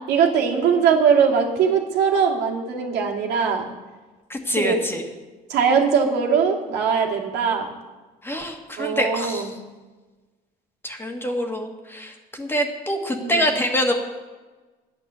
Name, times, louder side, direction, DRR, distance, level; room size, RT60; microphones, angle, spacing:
voice 1, 0.1-3.7 4.6-4.8 5.5-7.7 8.8-9.5 13.2-13.5, right 6 dB, 85° right, 0 dB, 2.1 m, -21 dB
voice 2, 4.3-5.1 8.2-9.5 10.8-13.9, equal, 15° left, 3 dB, 1.7 m, -25 dB
11.0 x 9.9 x 6.9 m, 1.3 s
cardioid pair, 110°, 17 cm